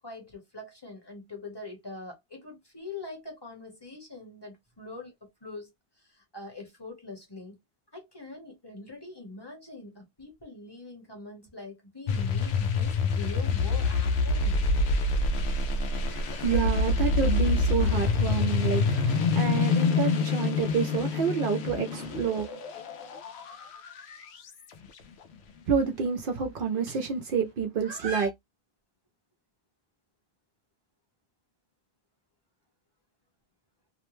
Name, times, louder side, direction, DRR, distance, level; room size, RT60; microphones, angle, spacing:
voice 1, 0.0-5.7 6.0-7.6 7.9-14.7, left 3 dB, 25° left, 0.9 m, -43 dB
sound 1, 12.1-24.5, left 3 dB, 90° left, 0.8 m, -26 dB
voice 2, 15.8-22.5 25.7-28.3, right 6 dB, 60° right, 0.7 m, -29 dB
2.5 x 2.1 x 3.0 m
omnidirectional pair, 1.1 m